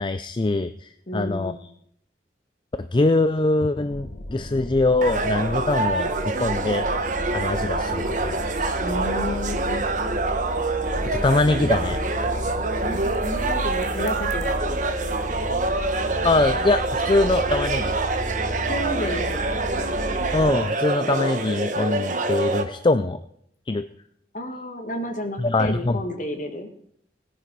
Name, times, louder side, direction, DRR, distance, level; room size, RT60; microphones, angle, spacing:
voice 1, 0.0-1.5 2.8-6.9 7.3-8.8 11.0-12.0 16.2-17.9 20.3-23.2 23.7-23.9 25.4-26.0, left 2 dB, 25° left, 11 dB, 0.4 m, -23 dB
voice 2, 1.1-1.6 8.8-9.8 12.8-14.8 18.7-19.5 24.3-26.7, left 1 dB, 45° left, 5 dB, 1.8 m, -31 dB
sound 1, 3.9-20.5, equal, 70° left, 2.4 m, -33 dB
sound 2, 5.0-22.6, right 3 dB, 45° right, 1.2 m, -26 dB
17.0 x 9.9 x 4.7 m, 0.72 s
head